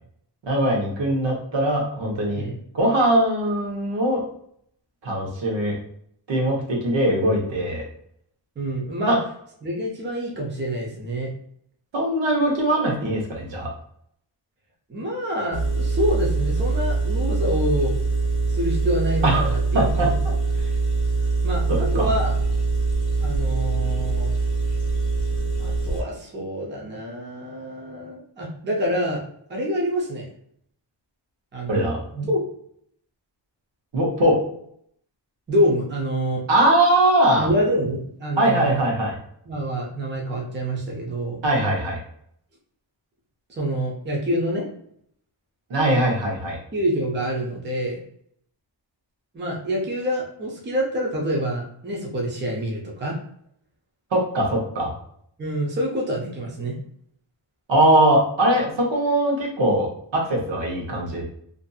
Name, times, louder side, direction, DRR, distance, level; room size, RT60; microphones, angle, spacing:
voice 1, 0.4-2.4 2.7-4.2 5.0-5.8 6.3-7.8 9.1-9.2 11.9-13.7 19.2-20.1 21.7-22.1 31.7-32.0 33.9-34.4 36.5-37.5 38.4-39.2 41.4-42.0 45.7-46.6 54.1-55.0 57.7-59.9 60.1-61.2, right 1 dB, 75° right, -1 dB, 0.9 m, -21 dB
voice 2, 8.6-9.2 9.6-11.3 14.9-17.9 18.4-19.6 20.0-20.1 21.4-22.4 23.2-24.3 25.6-29.2 29.5-30.2 31.5-32.4 35.5-36.4 37.4-38.9 39.5-41.4 43.5-44.7 46.7-48.0 49.3-53.2 55.4-56.7, equal, 25° right, -2 dB, 0.5 m, -26 dB
Engine, 15.5-26.0, right 3 dB, 35° left, 0.7 m, -23 dB
2.6 x 2.6 x 2.3 m, 0.68 s
wide cardioid pair, 170°, 44 cm